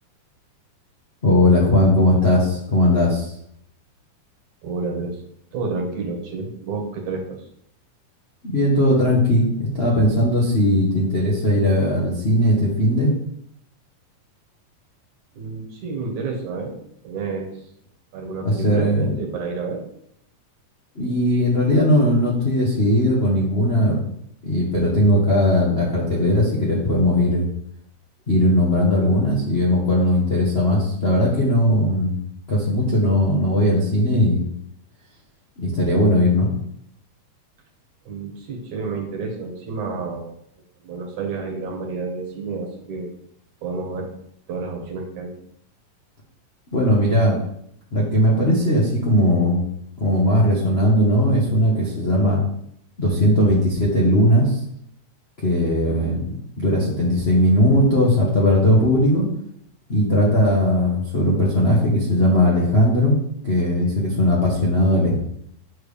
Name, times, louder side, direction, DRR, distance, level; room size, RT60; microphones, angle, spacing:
voice 1, 1.2-3.3 8.4-13.1 18.4-19.1 20.9-24.0 24.4-27.4 28.3-32.2 32.5-34.4 35.6-36.5 46.7-47.4 47.9-49.6 50.0-52.4 53.0-54.6 55.4-59.3 59.9-63.2 63.4-65.2, left 1 dB, 60° left, -5 dB, 0.6 m, -18 dB
voice 2, 4.6-5.2 5.5-7.4 15.4-16.8 17.0-17.6 18.1-19.8 38.1-40.3 40.8-43.1 43.6-44.1 44.5-45.3 55.9-56.2, right 4 dB, 65° right, 1 dB, 2.7 m, -30 dB
7.8 x 3.6 x 6.6 m, 0.70 s
omnidirectional pair, 3.9 m